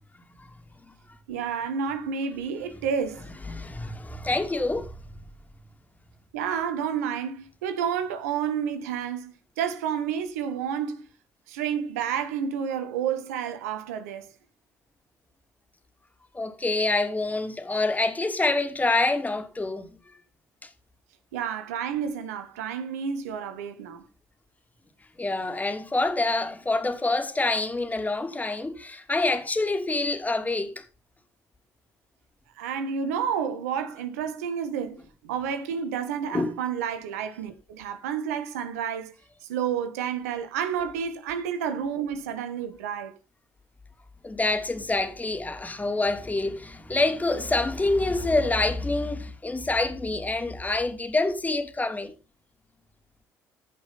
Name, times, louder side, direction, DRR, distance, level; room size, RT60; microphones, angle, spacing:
voice 1, 1.3-3.3 6.3-11.0 11.5-14.3 21.3-24.0 32.6-39.1 39.4-43.2, right 7 dB, 90° right, 1.4 m, -30 dB
voice 2, 3.4-4.9 16.3-20.0 20.6-20.7 25.2-30.8 36.3-36.5 44.2-52.1, left 2 dB, 20° left, 2.9 m, -26 dB
15.5 x 5.6 x 4.1 m
hypercardioid pair, 60°, 8 cm